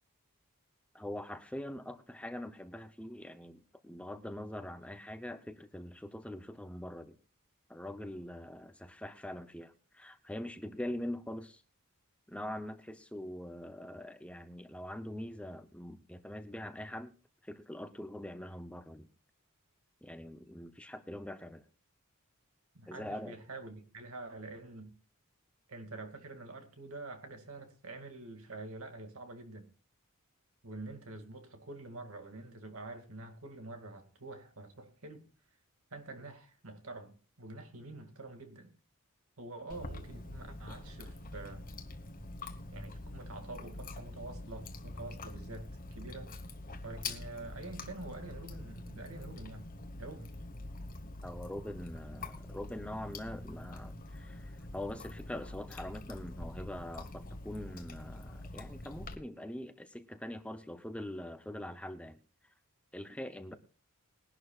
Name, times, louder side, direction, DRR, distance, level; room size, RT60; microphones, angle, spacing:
voice 1, 0.9-7.2 7.7-11.6 12.3-17.1 17.4-19.1 20.0-21.6 22.9-23.4 51.2-62.2 62.4-62.5 62.9-63.5, left 1 dB, 5° left, 0.7 m, -43 dB
voice 2, 22.7-24.9 25.7-29.7 30.6-35.2 35.9-38.7 39.4-41.7 42.7-46.3 46.8-49.7 50.0-50.3, right 2 dB, 75° right, 2.2 m, -47 dB
Chewing mastication, 39.7-59.1, left 2 dB, 40° left, 1.3 m, -45 dB
21.0 x 11.5 x 2.4 m
head